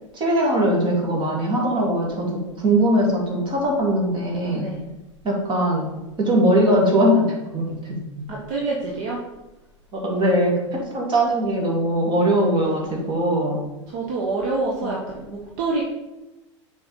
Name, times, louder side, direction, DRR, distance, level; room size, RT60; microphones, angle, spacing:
voice 1, 0.1-4.7 5.2-5.9 6.2-7.8 8.1-8.2 9.9-13.6 14.8-14.9, right 1 dB, 30° right, -1 dB, 2.5 m, -21 dB
voice 2, 4.5-4.9 8.3-9.2 13.9-15.8, right 3 dB, 45° right, -3 dB, 1.5 m, -27 dB
7.0 x 4.6 x 5.5 m, 1.0 s
figure-of-eight pair, 95°, 16 cm